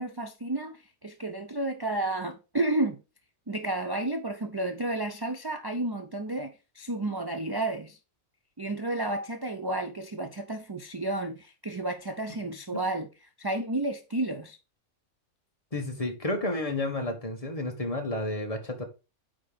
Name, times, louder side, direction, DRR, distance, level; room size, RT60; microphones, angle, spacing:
voice 1, 0.0-3.0 3.5-8.0 8.6-13.1 13.4-14.6, right 2 dB, 25° right, 0.6 m, -31 dB
voice 2, 15.7-18.8, left 2 dB, 30° left, 1.3 m, -31 dB
9.1 x 3.7 x 5.1 m
omnidirectional pair, 1.3 m